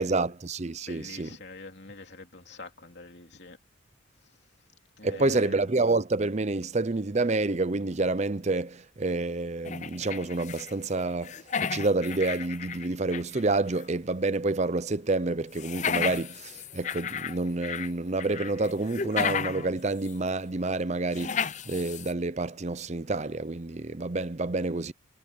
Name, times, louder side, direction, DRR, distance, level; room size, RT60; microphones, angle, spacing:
voice 1, 0.0-1.4 5.0-24.9, right 2 dB, 35° right, 0.6 m, -28 dB
voice 2, 0.9-3.6 5.0-5.6, left 3 dB, 55° left, 3.0 m, -45 dB
sound 1, 9.7-10.7 11.0-13.4 13.8-13.9 15.5-17.9 18.2-19.7 20.0-20.1 21.1-22.1, left 7 dB, 35° left, 0.6 m, -33 dB
head